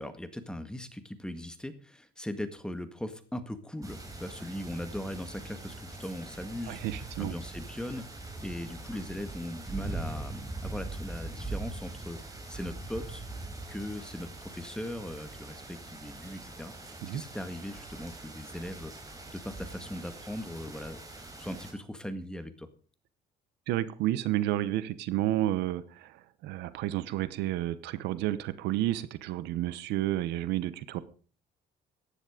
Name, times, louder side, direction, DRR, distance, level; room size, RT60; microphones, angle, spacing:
voice 1, 0.0-13.2 13.7-22.7, left 1 dB, 5° left, 9 dB, 1.8 m, -39 dB
sound 1, 3.8-21.7, right 2 dB, 20° right, 4.6 m, -42 dB
voice 2, 6.7-7.3 17.0-17.2 23.7-31.0, right 14 dB, 90° right, 15 dB, 1.1 m, -31 dB
15.0 x 10.5 x 5.1 m, 0.41 s
cardioid pair, 110°, 17 cm